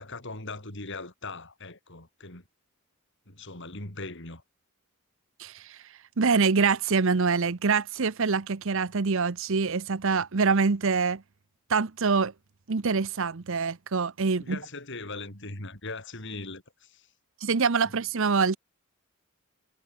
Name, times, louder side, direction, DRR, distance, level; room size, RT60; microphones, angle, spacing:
voice 1, 0.0-2.4 3.3-4.4 14.4-17.1, left 3 dB, 60° left, 6.4 m, -40 dB
voice 2, 5.4-5.8 6.2-11.2 11.7-12.3 12.7-14.6 17.4-18.6, right 5 dB, 60° right, 0.8 m, -25 dB
head